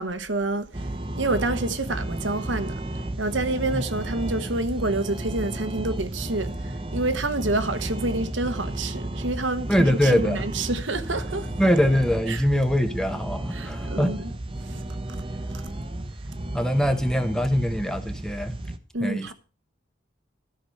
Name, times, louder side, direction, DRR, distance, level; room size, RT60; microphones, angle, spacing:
voice 1, 0.0-2.7 3.2-11.5 12.3-12.4 13.5-14.3 14.6-15.2 15.5-15.7 18.9-19.3, right 2 dB, 75° right, 1.1 m, -28 dB
sound 1, 0.7-18.8, right 1 dB, 25° right, 0.9 m, -33 dB
voice 2, 9.7-10.4 11.6-14.1 16.5-18.5 19.0-19.3, equal, 5° left, 0.9 m, -23 dB
13.0 x 6.1 x 6.4 m
head